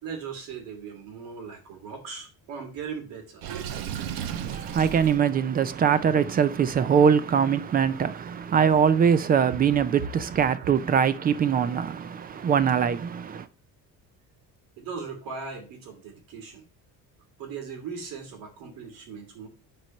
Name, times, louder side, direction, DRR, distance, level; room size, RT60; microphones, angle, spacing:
voice 1, 0.0-3.4 14.8-16.6 17.4-19.5, right 5 dB, 75° right, 2.8 m, -38 dB
Water / Sink (filling or washing), 3.4-5.2, right 9 dB, 90° right, 1.0 m, -34 dB
voice 2, 4.3-13.5, right 7 dB, 25° right, 0.4 m, -22 dB
7.5 x 4.6 x 5.3 m
cardioid pair, 165°, 34 cm